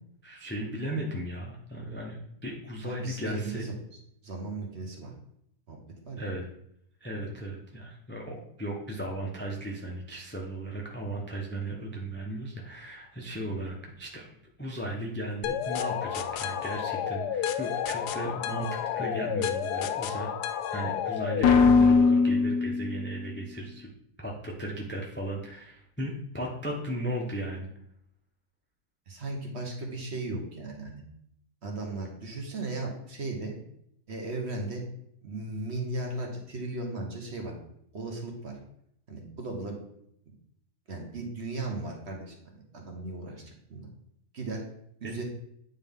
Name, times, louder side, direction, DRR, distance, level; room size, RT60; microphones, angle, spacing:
voice 1, 0.2-3.7 6.2-6.4 7.0-14.3 14.6-23.9 24.2-27.7, right 1 dB, 15° left, 0 dB, 0.4 m, -36 dB
voice 2, 2.8-3.7 4.2-5.1 5.7-5.8 6.1-6.3 29.1-31.0 31.6-33.6 34.1-34.8 35.2-37.5 37.9-38.6 39.1-39.8 40.9-43.9 44.3-44.7 45.0-45.2, right 2 dB, 45° right, 1 dB, 1.3 m, -36 dB
sound 1, 15.4-23.2, left 5 dB, 80° left, 1.1 m, -26 dB
8.9 x 3.9 x 3.6 m, 0.72 s
omnidirectional pair, 1.7 m